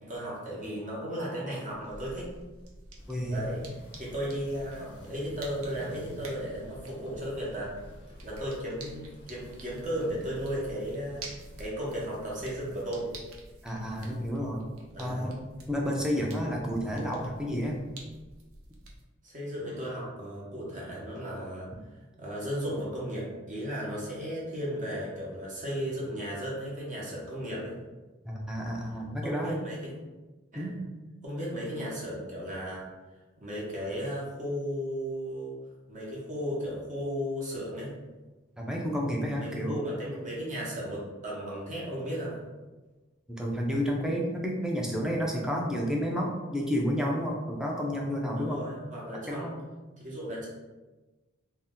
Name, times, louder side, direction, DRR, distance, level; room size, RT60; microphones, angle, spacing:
voice 1, 0.0-2.3 3.3-3.6 4.0-7.7 8.2-13.1 14.9-15.4 19.2-21.7 22.2-27.8 29.2-29.9 30.5-30.7 31.2-32.8 33.4-35.5 35.9-37.9 39.4-42.4 48.4-49.5 50.0-50.5, equal, 35° right, -5 dB, 0.8 m, -35 dB
sound 1, 1.7-19.0, right 2 dB, 70° right, 0.5 m, -50 dB
sound 2, 3.0-11.7, equal, 55° left, 0.5 m, -49 dB
voice 2, 3.1-3.5 13.6-14.6 15.0-15.4 15.7-17.8 28.2-29.6 30.5-30.8 38.6-39.8 43.3-48.7 49.3-49.6, equal, 5° right, -2 dB, 0.4 m, -30 dB
2.7 x 2.1 x 3.5 m, 1.2 s
head